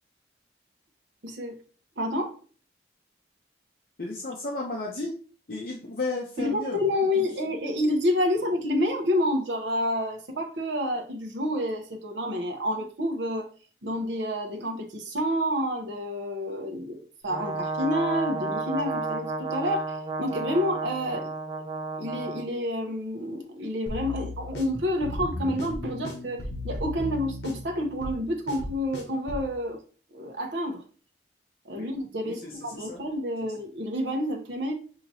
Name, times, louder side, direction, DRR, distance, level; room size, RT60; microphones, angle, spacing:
voice 1, 1.2-1.6 2.0-2.4 6.4-13.5 13.8-21.3 22.0-29.8 30.1-30.8 31.6-34.7, left 1 dB, 80° right, 2 dB, 0.9 m, -29 dB
voice 2, 4.0-5.1 5.5-6.8 7.2-7.3 31.8-31.9 32.2-33.0, left 2 dB, 55° left, -2 dB, 0.7 m, -34 dB
Brass instrument, 17.3-22.5, right 3 dB, 25° right, 0.5 m, -32 dB
sound 1, 23.9-29.5, left 2 dB, 70° left, 1.1 m, -36 dB
5.7 x 2.8 x 2.7 m, 0.40 s
head